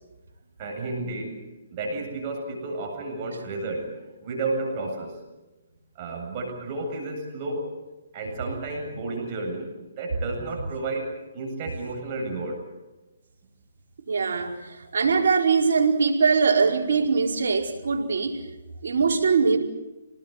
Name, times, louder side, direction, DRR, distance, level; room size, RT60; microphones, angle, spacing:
voice 1, 0.6-1.4 1.7-3.9 4.2-5.2 6.0-7.7 8.1-12.6, right 2 dB, 35° right, 7.8 m, -32 dB
voice 2, 14.1-18.4 18.8-19.6, right 5 dB, 70° right, 4.8 m, -22 dB
27.0 x 19.5 x 8.1 m
hypercardioid pair, 155°, 0 cm